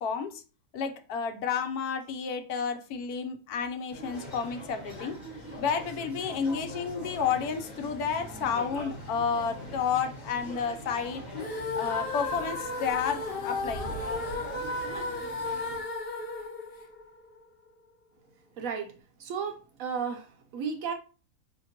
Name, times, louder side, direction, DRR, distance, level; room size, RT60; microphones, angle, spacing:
voice 1, 0.0-0.4 0.7-5.1 5.6-11.2 11.7-13.9, left 6 dB, 75° left, 8 dB, 1.1 m, -31 dB
sound 1, 3.9-15.8, equal, 30° left, 1.1 m, -42 dB
sound 2, 11.3-17.5, left 3 dB, 50° left, 0.8 m, -34 dB
voice 2, 18.6-18.9 19.2-20.9, right 6 dB, 70° right, 6 dB, 0.9 m, -34 dB
5.1 x 2.8 x 2.8 m, 0.36 s
omnidirectional pair, 1.7 m